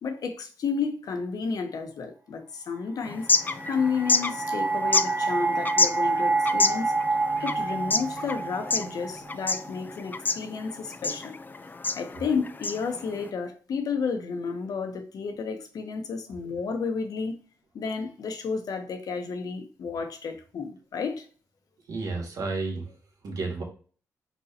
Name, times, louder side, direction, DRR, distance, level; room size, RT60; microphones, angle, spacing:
voice 1, 0.0-3.3 3.7-6.9 7.4-11.3 11.9-17.3 17.7-21.3, left 5 dB, 70° left, 1.0 m, -31 dB
sound 1, 3.0-13.3, left 3 dB, 30° left, 0.4 m, -29 dB
sound 2, 3.0-10.1, right 3 dB, 35° right, 1.2 m, -29 dB
voice 2, 21.9-22.9 23.2-23.6, right 3 dB, 75° right, 1.9 m, -32 dB
4.6 x 4.1 x 2.8 m
cardioid pair, 70°, 7 cm